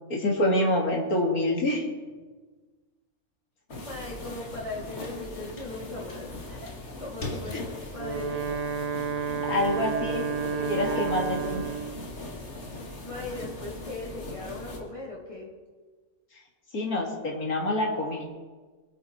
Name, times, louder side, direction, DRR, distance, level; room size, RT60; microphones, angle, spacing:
voice 1, 0.1-1.8 9.5-10.2 10.7-11.6 16.7-18.2, left 1 dB, 75° left, 1 dB, 2.8 m, -26 dB
sound 1, 3.7-14.8, left 2 dB, 50° left, 2.3 m, -39 dB
voice 2, 3.9-6.7 7.0-7.7 7.9-8.4 10.1-10.2 10.5-11.3 13.0-15.5, left 2 dB, 20° left, -5 dB, 3.7 m, -38 dB
Wind instrument woodwind instrument, 7.8-12.1, right 6 dB, 35° right, 0.6 m, -31 dB
23.5 x 9.0 x 4.3 m, 1.4 s
omnidirectional pair, 1.5 m